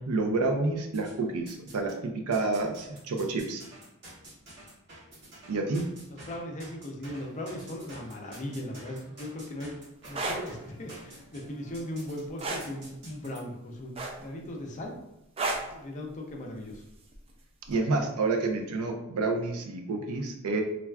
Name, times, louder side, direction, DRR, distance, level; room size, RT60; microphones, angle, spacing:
voice 1, 0.0-3.6 5.5-5.8 17.7-20.6, right 3 dB, 85° right, 3 dB, 0.5 m, -29 dB
sound 1, 0.9-2.0 2.3-13.4, right 1 dB, 55° right, 1.0 m, -50 dB
voice 2, 6.1-9.8 10.1-14.9 15.5-16.8, left 1 dB, 35° left, 1 dB, 0.4 m, -38 dB
sound 2, 10.0-10.4 12.4-12.7 14.0-14.4 15.4-15.7 17.1-17.3, right 2 dB, 25° right, 0.3 m, -31 dB
3.3 x 2.3 x 2.2 m, 0.89 s
head